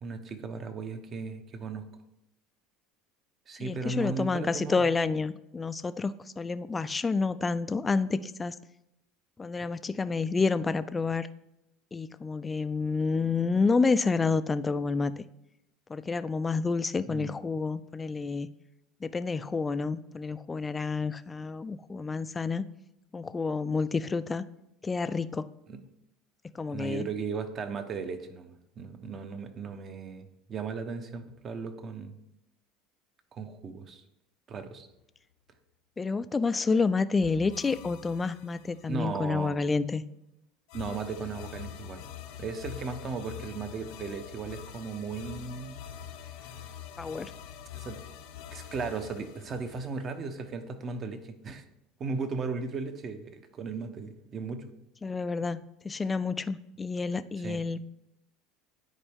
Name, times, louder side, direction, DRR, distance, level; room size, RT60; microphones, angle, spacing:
voice 1, 0.0-1.8 3.5-4.8 17.1-17.4 25.7-25.8 26.7-32.2 33.3-34.0 34.5-34.9 38.9-39.6 40.7-42.0 42.4-45.8 47.7-48.0 48.5-51.6 52.0-54.7 57.4-57.6, right 4 dB, 40° right, 8 dB, 0.8 m, -36 dB
voice 2, 3.6-8.5 9.4-11.3 11.9-15.2 15.9-18.5 19.0-22.6 23.1-24.4 24.8-25.5 26.6-27.1 36.0-40.0 47.0-47.3 55.0-57.8, left 4 dB, 20° left, 14 dB, 0.3 m, -29 dB
sound 1, 37.2-39.1 40.7-50.4, left 9 dB, 80° left, 0.8 m, -45 dB
9.8 x 4.5 x 3.5 m, 0.86 s
supercardioid pair, 100°, 0 cm